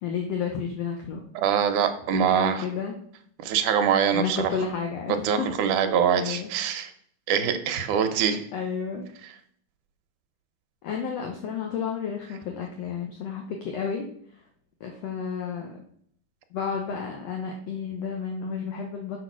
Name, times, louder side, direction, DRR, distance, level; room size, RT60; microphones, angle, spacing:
voice 1, 0.0-1.2 2.1-2.9 4.1-5.6 6.2-6.5 8.5-9.1 10.8-14.1 14.8-15.8 16.5-19.2, left 6 dB, 65° left, 2 dB, 1.7 m, -31 dB
voice 2, 1.4-2.7 3.4-4.5 5.2-6.9 7.3-8.4, right 8 dB, 75° right, 8 dB, 2.1 m, -24 dB
6.4 x 5.2 x 6.1 m, 0.64 s
omnidirectional pair, 3.9 m